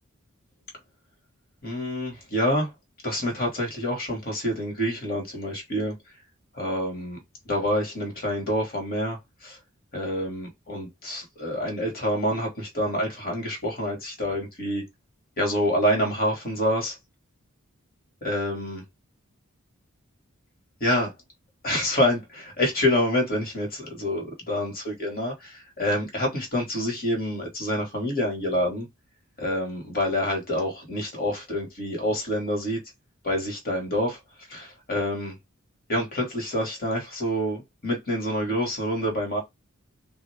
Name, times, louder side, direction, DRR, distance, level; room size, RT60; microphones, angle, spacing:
voice 1, 1.6-2.7 3.0-6.0 6.6-7.2 7.5-9.6 9.9-14.8 15.4-17.0 18.2-18.8 20.8-21.1 21.6-28.9 29.4-32.8 33.2-34.2 34.5-35.4 35.9-39.4, equal, 45° left, 1.9 m, -27 dB
3.7 x 2.8 x 3.5 m
head